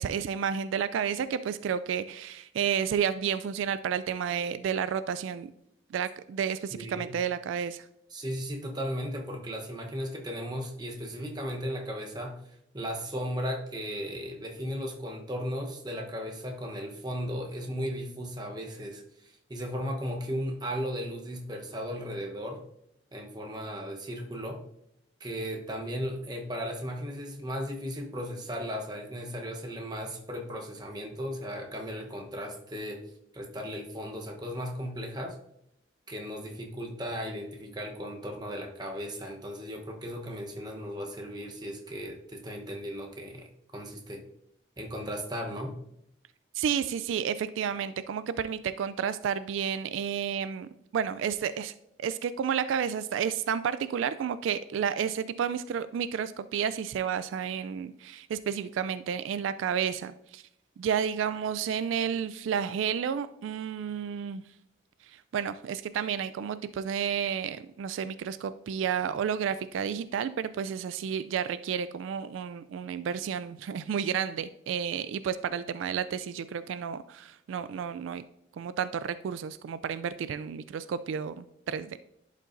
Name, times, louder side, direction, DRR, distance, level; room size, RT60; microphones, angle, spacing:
voice 1, 0.0-5.5 5.9-7.8 46.6-51.7 52.0-60.4 60.8-64.4 65.1-78.2 78.6-82.0, right 7 dB, 80° right, 14 dB, 0.3 m, -31 dB
voice 2, 6.7-7.1 8.1-12.4 12.7-19.0 19.5-22.6 23.1-24.6 25.2-33.0 33.3-35.4 36.1-43.5 43.7-44.2 44.8-45.8, equal, 20° right, 2 dB, 0.9 m, -36 dB
11.0 x 5.4 x 2.6 m, 0.77 s
head